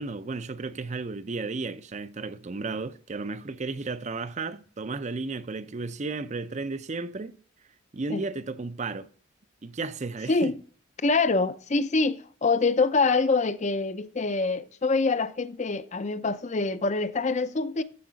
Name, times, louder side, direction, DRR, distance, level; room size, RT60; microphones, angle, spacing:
voice 1, 0.0-7.3 7.9-9.1 9.6-10.6, right 3 dB, 35° right, 0.5 m, -33 dB
voice 2, 11.0-17.8, left 3 dB, 35° left, 0.5 m, -25 dB
13.5 x 4.8 x 4.0 m
head